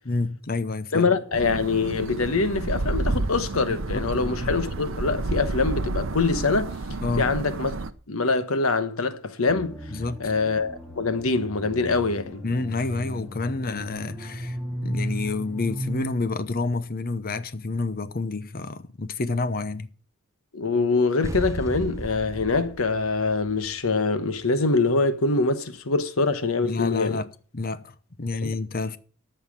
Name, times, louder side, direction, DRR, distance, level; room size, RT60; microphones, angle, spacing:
voice 1, 0.1-1.1 3.7-4.5 7.0-7.3 9.9-10.3 12.4-14.6 14.8-19.9 26.6-27.3 27.5-29.0, left 3 dB, 45° left, 0.8 m, -29 dB
voice 2, 0.9-6.7 7.2-7.7 8.1-9.8 10.2-12.4 20.5-27.2 28.4-28.5, left 3 dB, 85° left, 1.1 m, -24 dB
sound 1, 1.3-7.9, right 2 dB, 65° right, 0.8 m, -30 dB
sound 2, 9.5-16.1, equal, 5° left, 2.3 m, -34 dB
sound 3, 21.2-24.2, right 1 dB, 15° right, 0.4 m, -35 dB
14.0 x 5.7 x 7.3 m
head